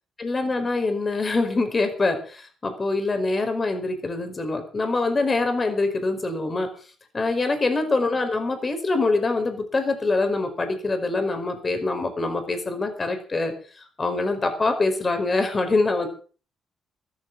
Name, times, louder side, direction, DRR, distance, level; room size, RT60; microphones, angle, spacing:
voice 1, 0.2-6.7 7.1-16.1, left 3 dB, 30° left, 7 dB, 5.1 m, -24 dB
14.5 x 13.0 x 6.0 m, 0.40 s
cardioid pair, 90°, 0 cm